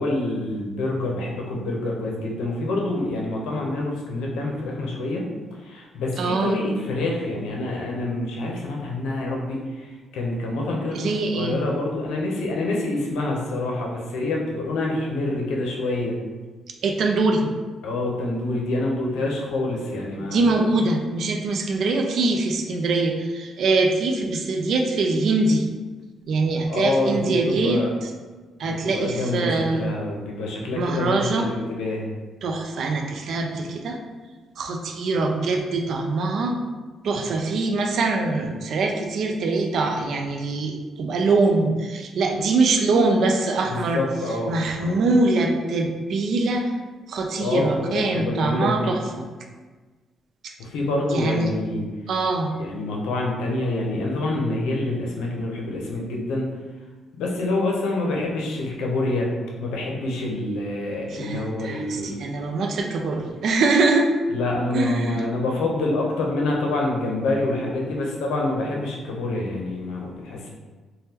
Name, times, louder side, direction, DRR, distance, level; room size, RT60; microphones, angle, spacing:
voice 1, 0.0-16.1 17.8-20.7 26.7-27.9 28.6-32.1 43.7-44.5 44.8-45.0 47.4-48.9 50.6-51.8 52.6-56.5 57.2-59.3 59.6-62.2 64.3-70.5, left 2 dB, 85° left, -1 dB, 0.6 m, -27 dB
voice 2, 6.2-6.6 10.9-11.6 16.8-17.5 20.1-25.7 26.3-28.1 28.6-29.9 30.7-31.5 32.4-34.0 34.6-36.6 37.0-44.0 44.5-46.7 47.1-49.3 50.4-50.5 51.1-51.5 52.1-52.5 61.1-64.1 64.7-65.3, right 3 dB, 65° right, 3 dB, 0.4 m, -23 dB
3.5 x 2.2 x 2.8 m, 1.3 s
cardioid pair, 90°, 0 cm